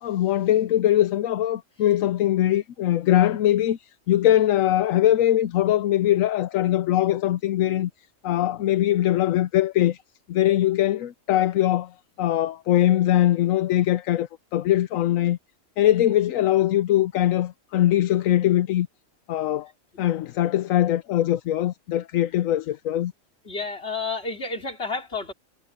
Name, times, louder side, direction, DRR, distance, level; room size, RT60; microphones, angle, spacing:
voice 1, 0.0-3.8 4.1-7.9 8.2-10.0 10.3-11.9 12.2-15.4 15.8-18.9 19.3-19.7 20.0-23.1, left 13 dB, 80° left, 1.0 m, -21 dB
voice 2, 23.5-25.3, left 3 dB, 50° left, 3.7 m, -30 dB
omnidirectional pair, 1.4 m